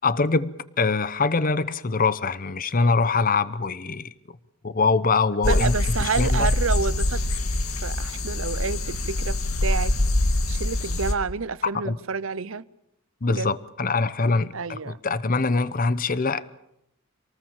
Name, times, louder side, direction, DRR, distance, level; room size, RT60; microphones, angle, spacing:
voice 1, 0.0-4.1 4.6-5.7 6.0-6.5 11.8-12.0 13.2-16.4, left 4 dB, 40° left, 0.8 m, -23 dB
sound 1, 5.4-11.1, left 1 dB, 80° left, 2.1 m, -24 dB
voice 2, 5.5-7.2 7.8-9.4 9.6-9.9 10.5-12.6 13.3-13.5 14.5-15.0, right 5 dB, 65° right, 0.8 m, -29 dB
27.0 x 19.5 x 7.4 m
head